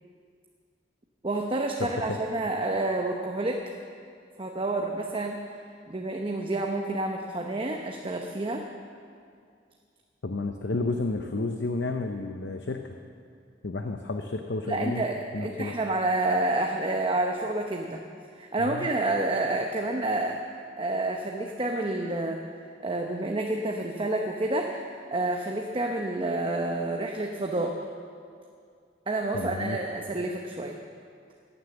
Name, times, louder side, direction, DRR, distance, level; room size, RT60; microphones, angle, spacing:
voice 1, 1.2-3.6 4.4-5.4 5.9-8.6 14.7-18.0 18.4-22.4 22.8-27.7 29.1-30.8, right 2 dB, 30° right, 2 dB, 0.8 m, -29 dB
voice 2, 1.8-2.2 10.2-12.9 13.6-15.0 15.3-15.8 18.6-18.9 29.3-29.8, left 2 dB, 65° left, 5 dB, 0.8 m, -31 dB
16.0 x 9.8 x 7.2 m, 2.3 s
head